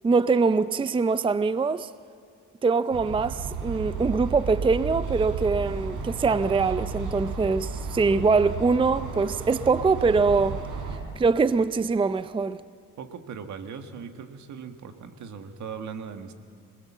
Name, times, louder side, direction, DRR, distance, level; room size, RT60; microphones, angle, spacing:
voice 1, 0.0-1.9 2.6-10.6 11.2-12.6, right 4 dB, 15° right, 0.5 m, -23 dB
sound 1, 2.9-11.0, right 5 dB, 85° right, 4.0 m, -33 dB
voice 2, 13.0-16.3, right 6 dB, 70° right, 1.7 m, -39 dB
26.5 x 20.0 x 7.3 m
cardioid pair, 90°, 30 cm